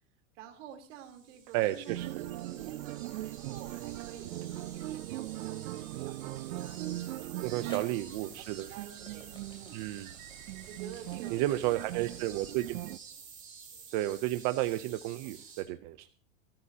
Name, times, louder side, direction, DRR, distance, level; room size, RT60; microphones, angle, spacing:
voice 1, 0.3-9.8 10.7-12.3, right 8 dB, 60° right, 4 dB, 3.6 m, -50 dB
sound 1, 0.9-15.6, right 6 dB, 20° right, 5.2 m, -51 dB
voice 2, 1.5-2.2 7.4-8.7 9.7-10.1 11.3-12.8 13.9-16.1, right 15 dB, 35° right, 10 dB, 0.6 m, -32 dB
sound 2, 1.9-13.0, right 16 dB, 75° right, 0.6 m, -40 dB
sound 3, 3.6-4.2 4.9-5.1 6.9-7.0 7.7-13.9, left 2 dB, 10° left, 3.1 m, -56 dB
28.5 x 12.5 x 2.8 m, 0.38 s
supercardioid pair, 160°, 41 cm